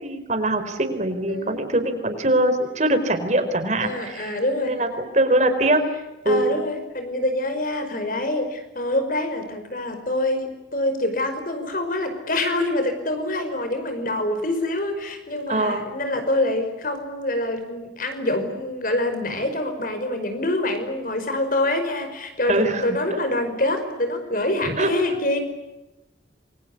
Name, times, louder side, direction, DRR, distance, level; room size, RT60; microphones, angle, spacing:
voice 1, 0.0-5.8 6.2-6.6 15.5-15.8 22.5-22.9 23.1-23.2 24.6-24.9, right 1 dB, 40° right, 8 dB, 4.4 m, -22 dB
voice 2, 1.3-1.6 3.8-4.8 6.3-25.4, left 1 dB, 50° left, 8 dB, 5.3 m, -25 dB
28.5 x 23.5 x 8.6 m, 1.0 s
head